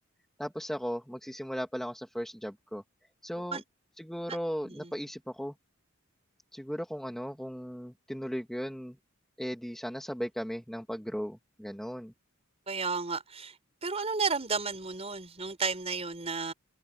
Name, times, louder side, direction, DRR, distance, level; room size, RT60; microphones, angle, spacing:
voice 1, 0.4-2.8 3.2-3.6 4.0-5.5 6.5-9.0 9.4-12.1, equal, ahead, 1.8 m, -37 dB
voice 2, 12.7-13.5 13.8-16.5, right 4 dB, 30° right, 4.9 m, -33 dB
head